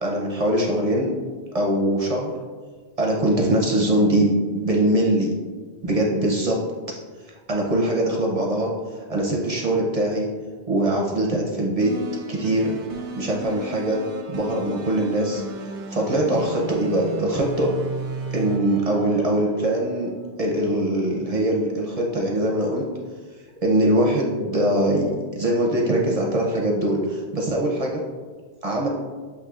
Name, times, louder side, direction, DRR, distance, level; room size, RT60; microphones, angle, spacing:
voice 1, 0.0-1.1 1.5-2.3 3.0-4.3 4.5-5.3 5.8-6.6 7.5-8.7 9.1-10.3 10.7-11.9 12.3-12.8 13.2-14.0 14.3-15.4 15.9-17.7 18.3-20.1 20.4-22.8 23.6-28.0 28.6-28.9, right 1 dB, 40° right, -1 dB, 0.6 m, -22 dB
sound 1, 11.8-20.0, right 3 dB, 90° right, 0.9 m, -35 dB
7.4 x 2.9 x 2.4 m, 1.5 s
omnidirectional pair, 1.1 m